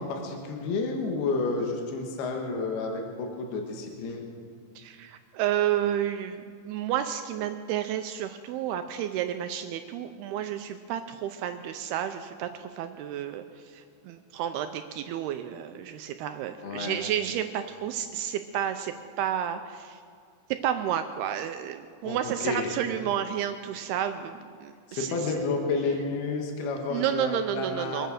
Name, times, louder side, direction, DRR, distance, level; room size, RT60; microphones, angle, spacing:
voice 1, 0.0-4.3 16.6-17.0 22.0-22.7 24.9-28.1, left 3 dB, 70° left, 2 dB, 3.3 m, -30 dB
voice 2, 4.8-20.0 20.6-25.2 26.9-28.1, right 10 dB, 80° right, 8 dB, 2.4 m, -31 dB
24.0 x 9.0 x 6.5 m, 2.2 s
omnidirectional pair, 4.9 m